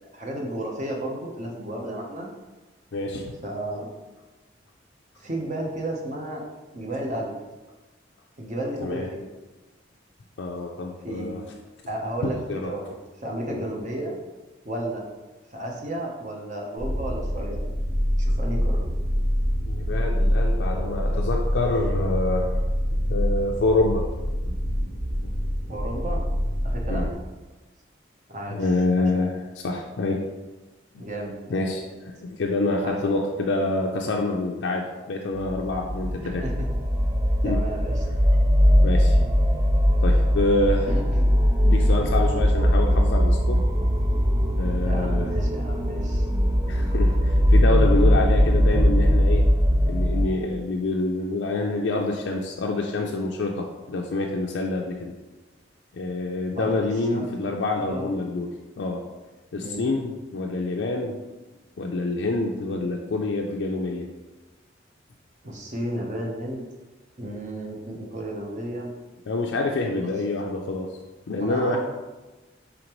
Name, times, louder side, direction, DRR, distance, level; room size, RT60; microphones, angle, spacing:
voice 1, 0.1-2.3 3.4-3.9 5.2-6.4 6.7-7.3 8.4-9.3 11.0-11.3 11.9-14.1 14.6-15.1 15.5-17.6 18.2-18.9 25.7-26.2 26.6-27.1 28.3-28.7 29.0-29.3 31.0-31.7 32.8-33.2 36.2-36.7 37.4-38.1 40.9-41.3 42.1-42.4 44.8-46.3 56.5-57.6 57.9-58.1 59.6-59.9 65.4-66.6 67.2-68.9 69.8-70.0 71.4-71.8, right 1 dB, 40° right, -1 dB, 0.8 m, -33 dB
voice 2, 2.9-3.3 8.8-9.1 10.4-11.4 12.2-12.7 13.5-13.7 19.7-22.6 23.1-24.1 24.5-24.9 26.9-27.1 28.5-30.2 30.9-31.1 31.5-36.4 37.4-37.6 38.8-39.2 40.0-40.9 41.6-43.6 44.6-45.3 46.7-49.5 49.9-55.1 55.9-59.0 59.5-61.2 61.8-64.1 69.3-70.9 71.3-71.8, left 2 dB, 75° left, 0 dB, 0.4 m, -27 dB
sound 1, 16.8-27.1, equal, 75° right, 1.5 m, -25 dB
sound 2, 35.4-50.2, equal, 20° right, 0.4 m, -20 dB
5.1 x 3.4 x 3.0 m, 1.2 s
head